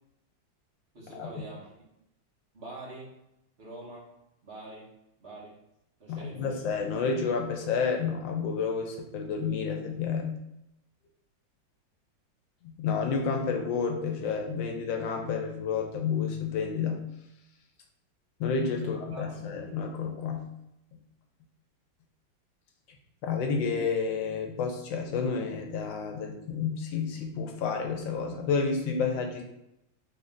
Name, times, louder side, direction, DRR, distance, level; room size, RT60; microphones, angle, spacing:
voice 1, 0.9-1.7 2.5-3.1 3.6-4.1 4.4-4.9 5.2-5.6 6.0-6.7 18.8-19.4, right 2 dB, 40° right, -5 dB, 1.3 m, -44 dB
voice 2, 6.1-10.4 12.6-17.1 18.4-20.5 23.2-29.4, left 5 dB, 80° left, 3 dB, 1.4 m, -30 dB
3.9 x 2.8 x 3.5 m, 0.85 s
omnidirectional pair, 2.1 m